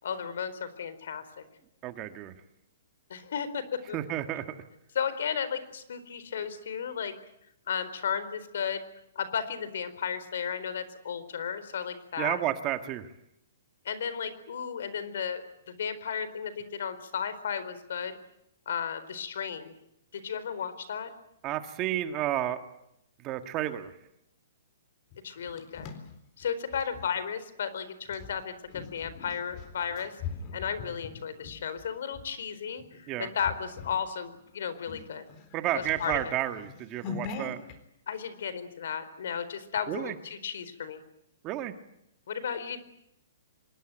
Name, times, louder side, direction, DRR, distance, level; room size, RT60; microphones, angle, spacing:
voice 1, 0.0-1.4 3.1-4.0 4.9-7.1 7.7-8.8 9.2-12.4 13.8-18.1 18.7-19.7 20.1-21.1 25.2-25.9 26.4-30.2 30.5-35.2 35.7-36.4 38.1-41.0 42.3-42.8, left 7 dB, 70° left, 13 dB, 4.3 m, -34 dB
voice 2, 1.8-2.3 3.9-4.4 12.2-13.1 21.4-22.6 23.2-23.9 33.1-33.3 35.5-37.6 39.9-40.2 41.4-41.7, right 13 dB, 25° right, 8 dB, 1.7 m, -31 dB
sound 1, 25.1-27.1 28.1-32.3 32.8-33.0 33.4-34.1 34.4-34.5 34.8-37.8, left 6 dB, 30° left, 3.8 m, -42 dB
26.0 x 21.0 x 9.1 m, 0.79 s
hypercardioid pair, 160°, 0 cm